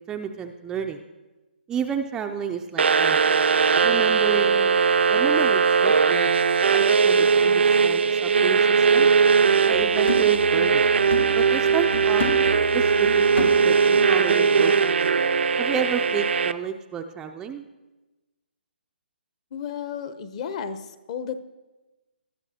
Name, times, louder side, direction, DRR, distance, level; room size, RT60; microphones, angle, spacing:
voice 1, 0.1-1.0 1.7-3.2 3.8-4.8 5.1-6.3 6.7-9.1 9.7-10.9 11.3-12.3 12.7-15.0 15.6-17.6, right 7 dB, 10° right, 4 dB, 0.3 m, -31 dB
sound 1, 2.8-16.5, right 5 dB, 80° right, 0.5 m, -19 dB
sound 2, 9.7-14.3 14.7-14.8, left 2 dB, 85° left, 1.3 m, -33 dB
voice 2, 19.5-21.4, left 7 dB, 35° left, 11 dB, 0.7 m, -33 dB
19.5 x 12.0 x 2.8 m, 1.1 s
hypercardioid pair, 155°, 6 cm